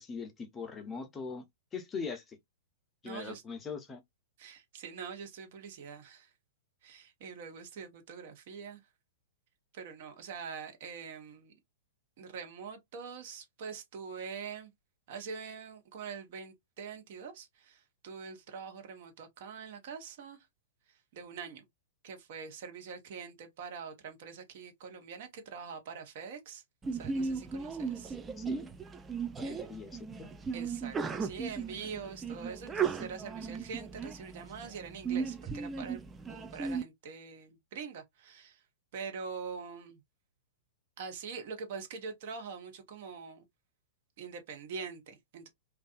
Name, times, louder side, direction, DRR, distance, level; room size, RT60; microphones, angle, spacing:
voice 1, 0.0-1.4 1.7-2.4 3.0-4.0 28.4-28.7 29.4-29.9 30.2-30.3, left 5 dB, 20° left, 0.6 m, -41 dB
voice 2, 3.0-3.4 4.4-6.3 6.8-8.8 9.7-11.5 12.2-14.7 15.1-20.4 21.1-21.6 22.0-26.6 26.9-28.2 29.4-29.6 30.5-36.0 36.3-38.6 38.9-40.0 41.0-43.4 44.2-45.5, right 6 dB, 55° right, 0.8 m, -44 dB
Sneeze, 26.8-36.8, right 5 dB, 15° right, 0.3 m, -36 dB
2.6 x 2.3 x 2.4 m
figure-of-eight pair, 105°, 0 cm